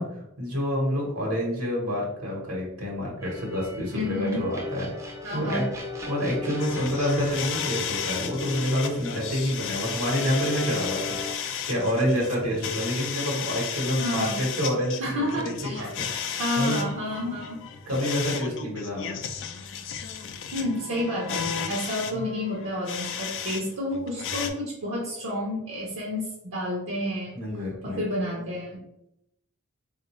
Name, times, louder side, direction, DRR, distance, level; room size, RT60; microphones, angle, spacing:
voice 1, 0.0-4.9 5.3-5.6 6.1-15.5 15.8-16.1 16.5-16.8 17.9-19.2 22.1-22.2 27.3-28.0, equal, 85° right, -3 dB, 1.1 m, -28 dB
sound 1, 3.2-11.4, left 2 dB, 15° right, 0.5 m, -37 dB
voice 2, 3.9-4.5 5.2-5.6 14.0-14.4 15.0-15.9 16.4-17.6 20.5-27.3 27.8-28.8, left 1 dB, 65° right, -4 dB, 0.7 m, -30 dB
sound 2, 6.6-23.6 23.9-24.5, left 7 dB, 60° left, 0.4 m, -34 dB
3.7 x 2.4 x 3.0 m, 0.82 s
head